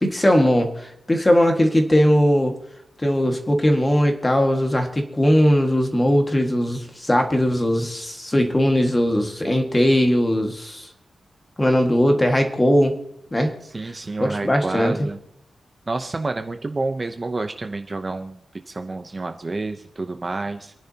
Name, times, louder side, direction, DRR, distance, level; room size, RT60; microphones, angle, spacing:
voice 1, 0.0-2.6 3.0-10.9 11.6-13.0 13.3-13.5 14.2-14.9, equal, 15° left, 4 dB, 1.8 m, -19 dB
voice 2, 13.6-15.2 15.9-20.7, right 3 dB, 25° right, 7 dB, 0.7 m, -29 dB
29.5 x 10.5 x 2.9 m, 0.76 s
wide cardioid pair, 165°, 0 cm